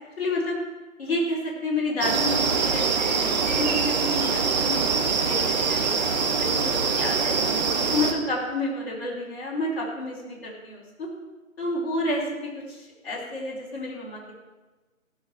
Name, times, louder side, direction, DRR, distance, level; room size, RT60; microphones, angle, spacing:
voice 1, 0.2-0.6 1.0-5.8 6.1-7.4 7.8-11.1 11.6-14.3, left 2 dB, 45° left, -4 dB, 4.4 m, -30 dB
sound 1, 2.0-8.1, right 5 dB, 30° right, 1.2 m, -24 dB
15.5 x 7.1 x 5.9 m, 1.2 s
figure-of-eight pair, 145°, 42 cm